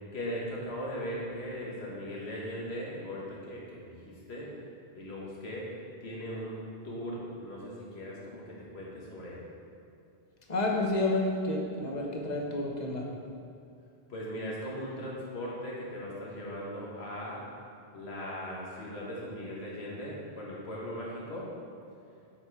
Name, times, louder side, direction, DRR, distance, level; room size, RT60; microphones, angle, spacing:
voice 1, 0.1-4.5 4.9-5.7 6.0-9.4 14.1-17.4 17.9-21.5, equal, 80° left, -5 dB, 1.7 m, -39 dB
voice 2, 10.5-13.0, left 2 dB, 45° left, -1 dB, 1.1 m, -30 dB
8.6 x 4.3 x 4.7 m, 2.5 s
omnidirectional pair, 1.1 m